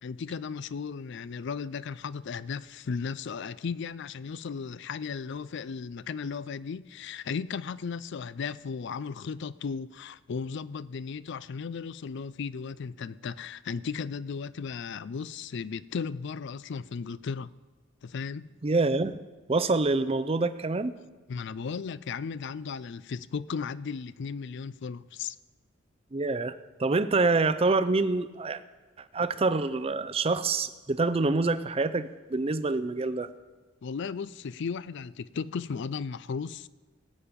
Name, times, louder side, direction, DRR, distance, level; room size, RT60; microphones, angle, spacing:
voice 1, 0.0-17.5 18.0-18.5 21.3-25.4 33.8-36.7, left 5 dB, 60° left, 0.4 m, -35 dB
voice 2, 18.6-19.2 19.5-20.9 26.1-26.5 26.8-28.6 29.1-33.3, right 3 dB, 30° right, 0.5 m, -26 dB
19.0 x 8.6 x 5.2 m
head